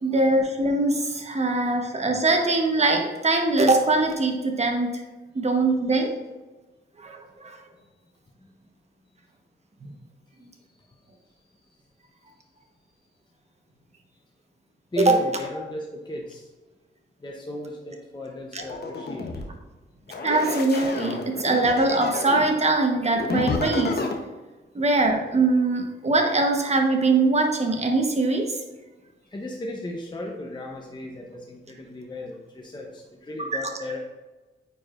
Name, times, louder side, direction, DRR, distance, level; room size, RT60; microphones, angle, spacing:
voice 1, 0.0-5.0 5.3-6.1 7.0-7.6 15.0-15.1 18.5-18.6 20.2-24.0 24.7-28.6 33.4-33.6, right 2 dB, 35° right, 3 dB, 1.1 m, -22 dB
voice 2, 14.9-16.5 17.2-19.3 29.3-34.0, left 1 dB, 20° left, 0 dB, 0.8 m, -35 dB
sound 1, 18.6-19.4 20.1-22.5 23.1-24.1, left 3 dB, 55° left, 0.9 m, -30 dB
9.2 x 4.7 x 2.5 m, 1.2 s
cardioid pair, 85°, 20 cm